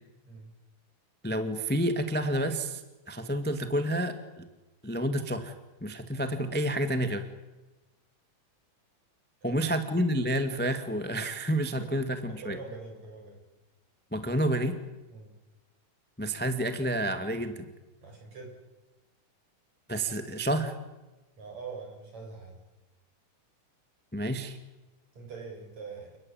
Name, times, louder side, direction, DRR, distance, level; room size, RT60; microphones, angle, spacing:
voice 1, 1.2-2.8 3.1-4.5 4.8-5.5 5.8-7.3 9.4-12.6 14.1-14.8 16.2-17.7 19.9-20.8 24.1-24.6, right 1 dB, 5° left, 8 dB, 1.1 m, -29 dB
voice 2, 9.4-9.7 11.8-11.9 12.3-13.4 15.1-15.3 18.0-18.6 21.4-22.6 25.1-26.2, right 4 dB, 55° right, 2 dB, 8.5 m, -43 dB
30.0 x 20.0 x 8.9 m, 1.1 s
omnidirectional pair, 3.7 m